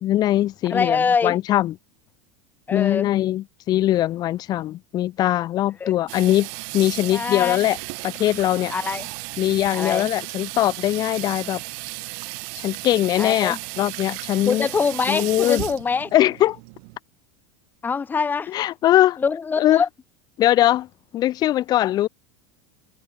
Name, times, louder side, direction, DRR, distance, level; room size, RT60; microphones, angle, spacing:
voice 1, 0.0-1.7 2.7-6.5 6.7-7.8 8.0-8.7 9.4-11.6 12.5-14.7 15.1-15.6 16.1-16.6 18.5-19.2 19.6-19.8 20.4-20.9 21.1-22.1, left 13 dB, 40° left, 3.3 m, -21 dB
voice 2, 0.7-1.4 2.7-3.1 5.8-5.9 7.1-7.6 8.7-9.1 9.7-10.1 13.2-13.6 14.5-16.1 17.8-18.5 19.2-19.9, left 5 dB, 15° left, 3.0 m, -24 dB
Water tap faucet / Sink (filling or washing), 6.1-17.0, right 40 dB or more, 60° right, 5.5 m, -35 dB
supercardioid pair, 140°, 11 cm